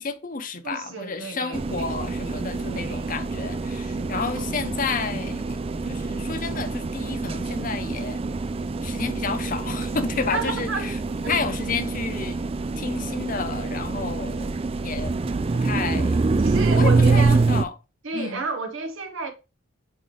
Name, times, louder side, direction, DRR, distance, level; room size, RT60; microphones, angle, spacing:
voice 1, 0.0-5.6 5.8-8.2 8.8-11.0 11.3-12.5 12.8-14.6 14.8-15.1 15.5-16.2 16.7-17.7 18.1-18.4, left 4 dB, 40° left, 0.8 m, -31 dB
voice 2, 0.6-1.9 2.7-3.1 4.0-4.3 10.3-10.9 11.2-11.4 16.4-17.5 18.0-19.3, right 3 dB, 65° right, 1.2 m, -31 dB
sound 1, 1.5-17.6, right 3 dB, 25° right, 0.3 m, -25 dB
8.8 x 3.3 x 3.9 m
head